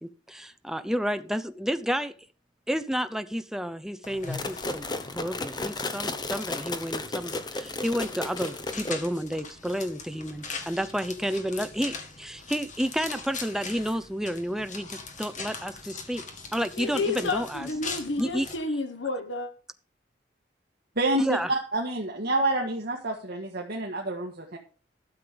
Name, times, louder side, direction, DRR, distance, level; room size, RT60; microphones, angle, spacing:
voice 1, 0.0-2.1 2.7-4.9 5.1-16.2 16.5-17.7 18.2-18.5 21.2-21.5, equal, 5° right, 0.7 m, -31 dB
sound 1, 4.0-18.6, left 4 dB, 45° left, 2.0 m, -41 dB
sound 2, 4.3-9.2, left 2 dB, 25° left, 1.0 m, -34 dB
voice 2, 16.8-19.5, left 3 dB, 80° left, 1.4 m, -30 dB
voice 3, 20.9-24.6, right 2 dB, 60° right, 1.8 m, -28 dB
12.5 x 7.6 x 5.2 m
head